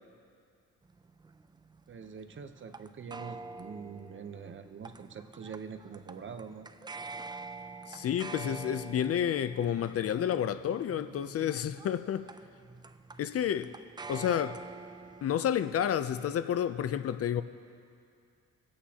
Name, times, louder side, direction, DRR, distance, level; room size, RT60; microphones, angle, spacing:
sound 1, 0.8-15.3, right 3 dB, 15° right, 0.4 m, -47 dB
voice 1, 1.9-6.7, right 6 dB, 40° right, 0.8 m, -44 dB
voice 2, 7.9-12.3 13.2-13.7 14.1-14.6 15.2-17.4, left 9 dB, 50° left, 0.5 m, -30 dB
25.0 x 8.6 x 2.9 m
cardioid pair, 90°, 30 cm